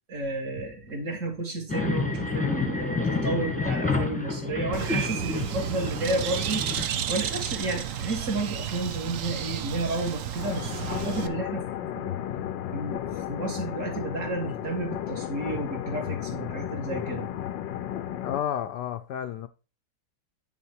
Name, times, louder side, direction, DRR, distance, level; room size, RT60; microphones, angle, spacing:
voice 1, 0.1-6.7 6.9-11.6 11.9-12.1 12.7-17.3, right 2 dB, 45° right, 2.2 m, -32 dB
sound 1, 1.7-6.9, left 3 dB, 5° left, 1.2 m, -29 dB
Bird, 4.7-11.3, right 9 dB, 65° right, 0.8 m, -32 dB
sound 2, 10.4-18.4, left 11 dB, 90° left, 1.4 m, -34 dB
voice 2, 18.2-19.5, left 10 dB, 70° left, 1.1 m, -31 dB
9.3 x 4.1 x 4.6 m
omnidirectional pair, 2.0 m